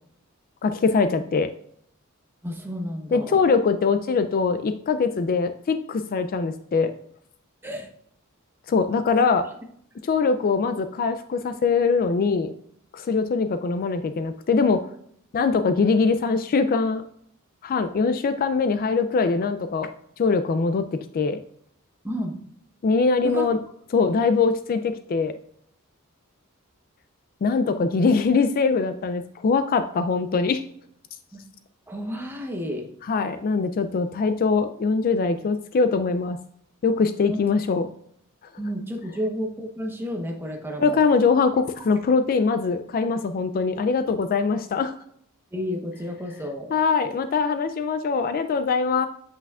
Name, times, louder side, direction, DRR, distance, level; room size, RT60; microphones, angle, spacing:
voice 1, 0.6-1.5 3.1-6.9 8.7-9.4 10.0-12.5 12.9-14.8 15.3-17.0 17.6-19.9 20.2-20.8 21.1-21.4 22.8-23.6 23.9-25.3 27.4-30.6 33.1-36.4 36.8-37.8 40.8-44.9 46.7-49.1, left 4 dB, 45° left, 10 dB, 0.3 m, -22 dB
voice 2, 2.4-3.4 7.6-7.9 9.1-9.3 22.0-22.3 23.2-23.5 31.3-31.4 31.9-32.9 37.3-37.4 38.6-41.0 45.5-46.7, equal, 10° right, 2 dB, 0.9 m, -31 dB
8.1 x 5.7 x 2.4 m, 0.66 s
head